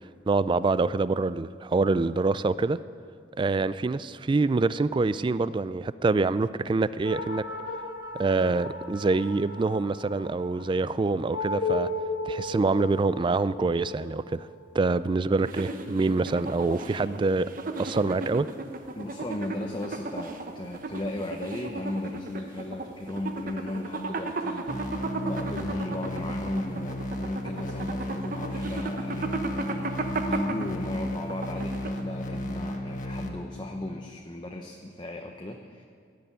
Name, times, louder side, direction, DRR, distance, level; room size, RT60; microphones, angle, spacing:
voice 1, 0.3-2.8 3.4-7.4 8.1-11.9 12.3-14.5 14.7-17.5 17.8-18.5, right 3 dB, 30° right, 16 dB, 0.3 m, -25 dB
sound 1, 7.0-15.9, left 3 dB, 80° left, 1.3 m, -36 dB
sound 2, 15.4-32.3, right 3 dB, 50° right, 1.0 m, -35 dB
voice 2, 18.9-35.8, left 1 dB, 25° left, 2 dB, 0.8 m, -36 dB
sound 3, 24.7-33.3, left 1 dB, 50° left, 1.4 m, -34 dB
15.5 x 6.8 x 9.3 m, 2.1 s
head